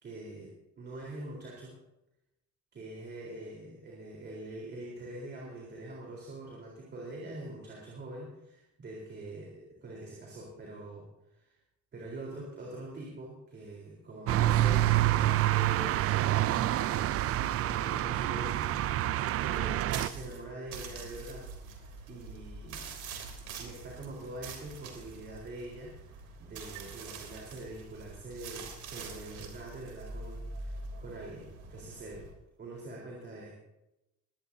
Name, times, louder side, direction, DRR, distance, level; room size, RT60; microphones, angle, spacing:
voice 1, 0.0-1.8 2.7-11.5 11.9-16.6 16.9-21.8 22.1-22.9 23.6-32.3 32.6-33.5, right 1 dB, 35° right, -3 dB, 4.1 m, -44 dB
sound 1, 14.3-20.1, right 14 dB, 55° right, 0.5 m, -27 dB
sound 2, 19.9-32.3, right 4 dB, 85° right, 3.4 m, -44 dB
22.0 x 18.0 x 2.8 m, 0.89 s
cardioid pair, 170°, 29 cm